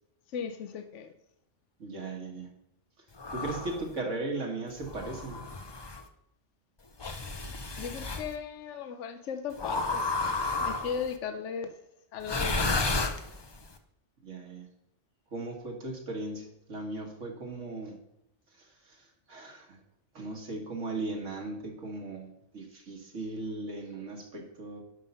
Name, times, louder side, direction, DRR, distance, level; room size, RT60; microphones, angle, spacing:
voice 1, 0.3-1.1 7.8-10.1 10.6-11.7 12.1-12.8, left 7 dB, 80° left, 8 dB, 1.0 m, -37 dB
voice 2, 1.8-2.5 3.3-5.4 14.2-14.7 15.3-18.0 18.6-19.0 19.3-19.8 20.1-24.8, right 2 dB, 90° right, 2 dB, 2.0 m, -37 dB
sound 1, 3.2-3.9 4.8-6.0 7.0-8.3 9.6-11.1 12.2-13.6, left 3 dB, 30° left, 0.5 m, -32 dB
11.0 x 5.5 x 5.5 m, 0.83 s
omnidirectional pair, 1.2 m